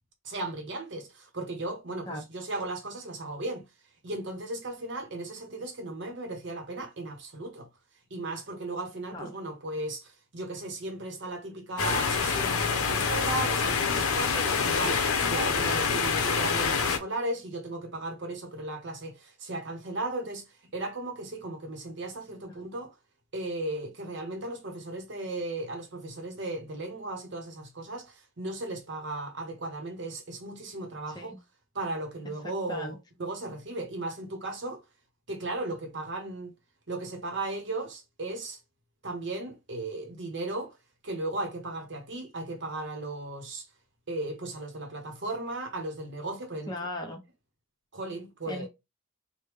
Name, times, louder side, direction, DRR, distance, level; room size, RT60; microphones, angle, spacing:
voice 1, 0.2-3.6 4.0-7.7 8.1-20.4 20.7-22.9 23.3-31.4 31.7-34.8 35.3-36.5 36.9-38.6 39.0-40.8 41.0-43.7 44.1-46.7 47.9-48.7, right 2 dB, 55° right, 0.8 m, -36 dB
sound 1, 11.8-17.0, left 5 dB, 90° left, 0.6 m, -26 dB
voice 2, 46.7-47.2 48.5-48.7, left 1 dB, 20° left, 0.5 m, -37 dB
3.4 x 2.2 x 3.0 m
head